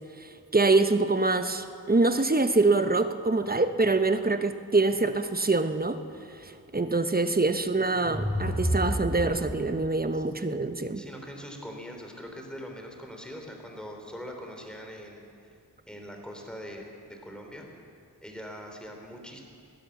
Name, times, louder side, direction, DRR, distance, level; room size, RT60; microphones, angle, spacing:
voice 1, 0.2-6.0 6.3-11.0, right 3 dB, 25° right, 9 dB, 1.0 m, -25 dB
sound 1, 7.8-9.9, equal, 20° left, 4.7 m, -30 dB
voice 2, 10.9-15.2 15.9-17.7 18.2-19.4, equal, ahead, 2 dB, 3.2 m, -42 dB
17.5 x 10.0 x 7.1 m, 2.4 s
cardioid pair, 45°, 37 cm